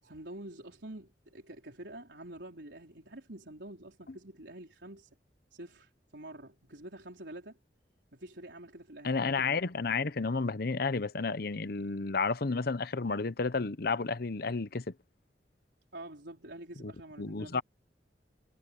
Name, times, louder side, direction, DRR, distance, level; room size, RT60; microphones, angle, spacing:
voice 1, 0.0-5.1 5.5-7.6 8.1-9.1 15.9-17.6, right 1 dB, 75° right, 4.2 m, -47 dB
voice 2, 9.0-14.8 16.8-16.9 17.2-17.6, left 4 dB, 60° left, 0.8 m, -31 dB
head